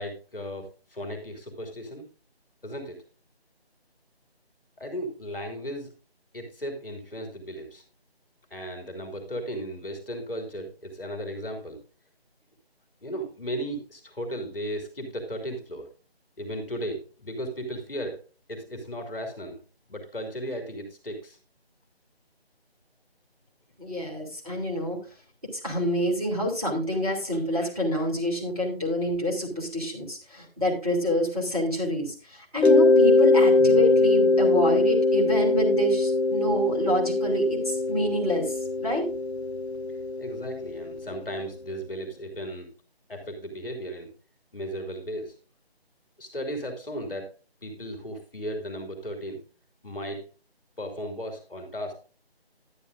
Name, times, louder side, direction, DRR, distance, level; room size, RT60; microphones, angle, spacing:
voice 1, 0.0-2.0 2.6-3.0 4.8-5.9 6.3-7.8 8.5-11.8 13.0-15.9 16.4-18.2 18.5-19.6 19.9-21.4 40.2-42.7 43.1-44.1 44.5-45.3 46.2-47.3 47.6-49.4 49.8-50.3 50.8-51.9, equal, 60° left, 5 dB, 2.5 m, -35 dB
voice 2, 23.8-25.0 25.6-39.1, equal, ahead, -15 dB, 1.1 m, -27 dB
Mallet percussion, 32.6-41.2, left 3 dB, 90° left, 0.8 m, -22 dB
11.5 x 9.9 x 2.5 m, 0.35 s
figure-of-eight pair, 160°, 32 cm